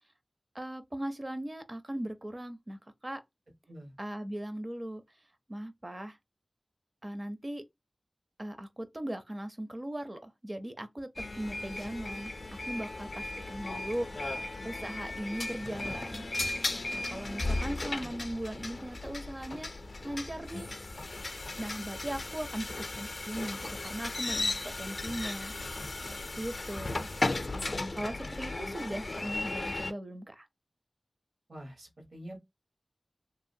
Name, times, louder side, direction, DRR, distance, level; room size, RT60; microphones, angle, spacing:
voice 1, 0.5-3.2 4.0-5.0 5.5-6.2 7.0-7.6 8.4-12.3 12.7-14.3 14.6-16.3 16.7-19.7 20.0-20.7 21.6-25.5 26.4-27.1 27.9-30.5, right 1 dB, 30° right, 0.5 m, -39 dB
sound 1, 11.2-29.9, left 2 dB, 55° left, 0.4 m, -36 dB
voice 2, 27.9-28.3 31.5-32.4, right 1 dB, 75° right, 1.6 m, -47 dB
3.0 x 2.0 x 2.6 m
wide cardioid pair, 75°, 0 cm